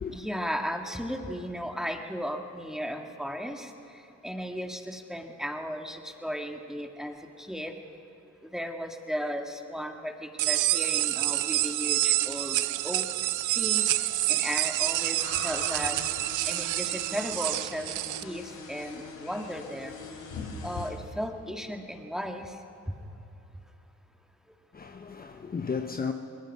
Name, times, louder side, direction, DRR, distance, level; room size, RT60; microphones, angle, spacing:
voice 1, 0.1-3.7 4.2-7.7 8.5-13.0 13.5-13.9 14.3-16.0 16.5-19.9 20.6-22.6, equal, ahead, 1.9 m, -35 dB
sound 1, 10.4-18.2, right 16 dB, 80° right, 0.5 m, -28 dB
sound 2, 14.9-20.9, left 4 dB, 90° left, 4.1 m, -42 dB
voice 2, 24.7-26.1, left 5 dB, 30° left, 1.0 m, -34 dB
26.0 x 20.5 x 5.6 m
cardioid pair, 90°, 30 cm